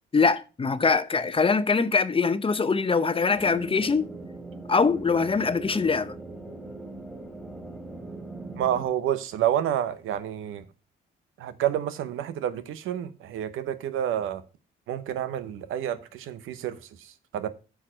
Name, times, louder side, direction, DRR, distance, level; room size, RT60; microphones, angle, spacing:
voice 1, 0.1-4.1 4.7-6.1, left 4 dB, 25° left, 0.7 m, -23 dB
sound 1, 3.3-8.8, right 2 dB, ahead, 2.2 m, -40 dB
voice 2, 8.5-10.6 11.4-14.4 14.9-17.5, right 10 dB, 90° right, 0.8 m, -29 dB
8.6 x 4.7 x 6.1 m
cardioid pair, 85°, 20 cm